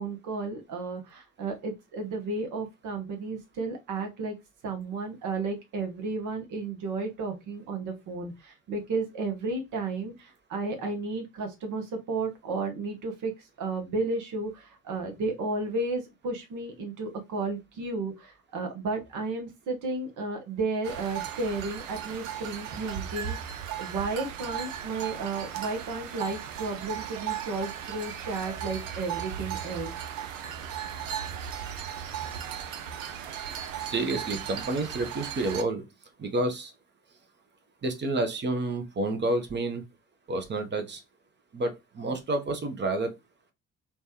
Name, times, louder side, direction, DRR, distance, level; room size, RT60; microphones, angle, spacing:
voice 1, 0.0-4.4 4.6-13.3 13.6-29.9, right 3 dB, 50° right, 0.9 m, -33 dB
sound 1, 20.8-35.6, right 9 dB, 75° right, 0.5 m, -36 dB
voice 2, 33.6-35.8 36.2-36.7 37.8-39.8 40.3-41.0 41.5-43.1, right 2 dB, 30° right, 0.8 m, -29 dB
3.2 x 2.3 x 2.8 m
figure-of-eight pair, 45°, 39 cm